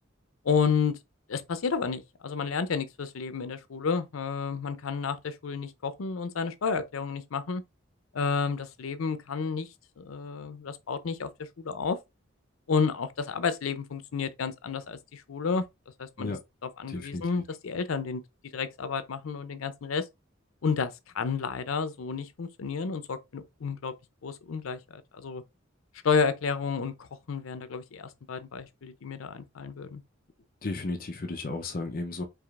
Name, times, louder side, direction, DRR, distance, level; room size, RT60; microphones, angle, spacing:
voice 1, 0.4-1.0 1.3-7.6 8.1-9.7 10.0-11.3 11.6-12.0 12.7-15.6 16.0-16.3 16.6-18.2 18.5-20.1 20.6-23.9 24.2-25.4 26.0-30.0, left 5 dB, 90° left, 0.5 m, -31 dB
voice 2, 16.9-17.2 30.6-32.2, left 2 dB, 45° left, 0.5 m, -34 dB
4.8 x 2.8 x 2.4 m
head